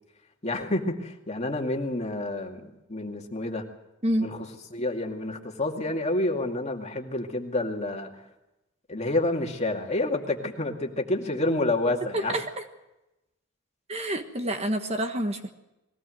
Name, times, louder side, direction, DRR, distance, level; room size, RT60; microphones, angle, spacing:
voice 1, 0.4-3.7 4.2-8.2 8.9-12.4, left 2 dB, 35° left, 2 dB, 2.3 m, -29 dB
voice 2, 12.1-12.4 13.9-15.5, right 1 dB, 30° right, 6 dB, 1.4 m, -28 dB
21.5 x 17.5 x 7.7 m, 0.94 s
head